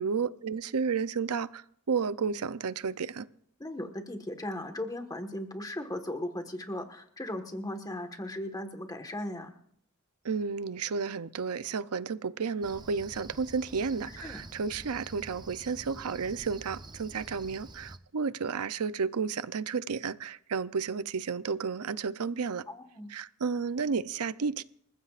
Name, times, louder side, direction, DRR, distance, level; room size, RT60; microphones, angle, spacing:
voice 1, 0.0-3.3 10.2-22.6 23.1-24.6, right 5 dB, 80° right, 15 dB, 0.6 m, -32 dB
voice 2, 3.6-9.5 14.1-14.5 22.7-23.1, left 1 dB, 15° left, 6 dB, 1.5 m, -37 dB
Cricket, 12.6-18.0, right 2 dB, 20° right, 0.7 m, -48 dB
28.5 x 15.5 x 2.5 m, 0.68 s
head